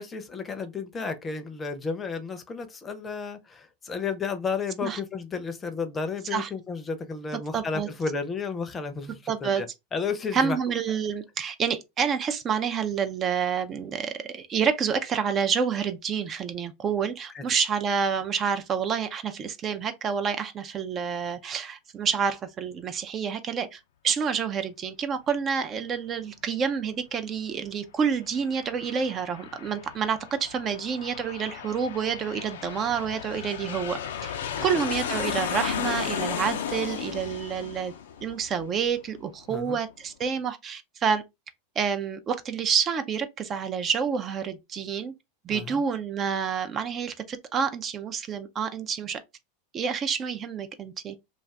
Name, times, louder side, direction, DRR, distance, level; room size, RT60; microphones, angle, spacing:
voice 1, 0.0-9.7 9.9-10.6 17.3-17.4 34.6-34.8 39.5-39.8 45.5-45.8, left 5 dB, 20° left, 0.6 m, -32 dB
voice 2, 7.5-7.9 9.3-9.6 10.3-37.9 38.2-41.2 41.8-45.1 45.4-49.2 49.7-51.2, right 6 dB, 35° right, 0.4 m, -28 dB
Aircraft, 28.1-39.3, left 8 dB, 80° left, 0.4 m, -35 dB
2.5 x 2.4 x 3.1 m
hypercardioid pair, 100°, 0 cm